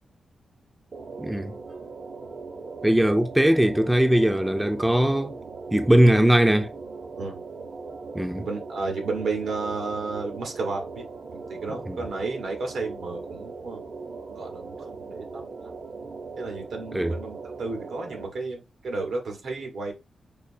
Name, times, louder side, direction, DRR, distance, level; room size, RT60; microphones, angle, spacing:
sound 1, 0.9-18.3, right 4 dB, 55° right, 0.6 m, -39 dB
voice 1, 1.2-1.5 2.8-5.4 5.7-6.7 8.1-8.4 11.9-12.0 16.9-17.1, right 1 dB, 5° right, 0.3 m, -20 dB
voice 2, 8.3-11.0 11.3-13.8 14.3-15.7 16.4-19.9, right 3 dB, 85° right, 1.1 m, -32 dB
5.3 x 2.0 x 2.6 m
cardioid pair, 100°, 0 cm